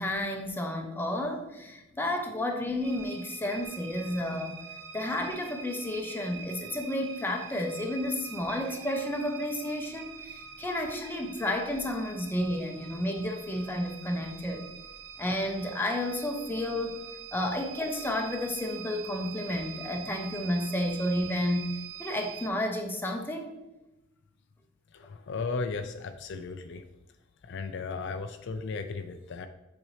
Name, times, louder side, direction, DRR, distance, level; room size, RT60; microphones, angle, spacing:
voice 1, 0.0-4.6 4.9-14.6 15.2-16.9 17.3-21.7 22.0-23.6, left 1 dB, 10° left, 3 dB, 0.7 m, -31 dB
sound 1, 2.8-22.5, right 7 dB, 60° right, 0.6 m, -45 dB
voice 2, 24.9-26.8 27.4-29.5, left 4 dB, 60° left, 8 dB, 0.4 m, -35 dB
7.4 x 4.2 x 3.2 m, 0.96 s
head